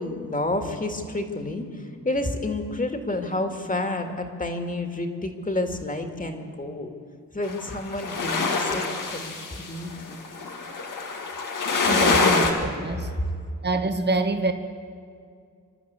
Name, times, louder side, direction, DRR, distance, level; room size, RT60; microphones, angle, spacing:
voice 1, 0.0-6.9 7.3-10.2 13.1-13.4, left 2 dB, 25° left, 4 dB, 2.2 m, -30 dB
sound 1, 7.4-12.5, left 4 dB, 85° left, 2.1 m, -25 dB
voice 2, 11.9-13.1 13.6-14.5, right 2 dB, 35° right, 7 dB, 1.4 m, -26 dB
27.0 x 12.0 x 8.2 m, 2.2 s
wide cardioid pair, 85°, 31 cm